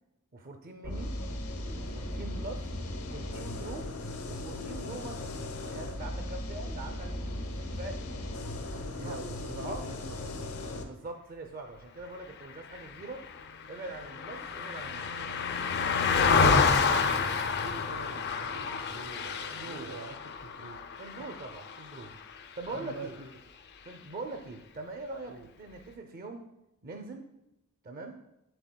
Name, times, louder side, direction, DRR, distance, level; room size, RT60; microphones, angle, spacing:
voice 1, 0.3-1.2 1.7-2.6 2.9-3.9 4.2-5.2 5.6-7.1 7.6-8.0 8.9-9.2 9.6-9.9 10.8-13.3 13.7-15.1 19.5-19.9 21.0-22.2 22.5-23.2 23.8-26.5 26.8-27.3 27.8-28.2, right 2 dB, 40° right, 4 dB, 0.5 m, -42 dB
sound 1, 0.8-10.8, left 1 dB, 80° left, 0.9 m, -37 dB
voice 2, 8.7-10.5 16.6-20.2 20.4-20.8 21.2-21.3 22.7-23.4 25.3-25.5, right 2 dB, 70° right, 6 dB, 0.8 m, -45 dB
Car passing by, 12.8-22.3 22.7-22.9, left 5 dB, 50° left, 0.4 m, -29 dB
7.8 x 7.7 x 2.2 m, 0.89 s
head